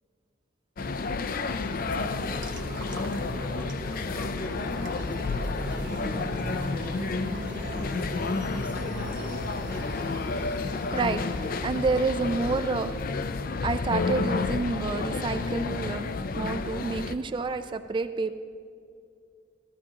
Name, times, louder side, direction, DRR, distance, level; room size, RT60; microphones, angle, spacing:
sound 1, 0.8-17.1, left 3 dB, 50° left, 0.4 m, -30 dB
voice 1, 1.5-8.0 8.4-9.3, equal, 10° right, -7 dB, 2.7 m, -44 dB
sound 2, 2.1-12.5, right 1 dB, 75° right, 1.1 m, -41 dB
voice 2, 10.9-13.0 13.6-16.1 16.4-18.3, right 3 dB, 25° right, 10 dB, 0.3 m, -29 dB
14.5 x 13.5 x 2.9 m, 2.4 s
head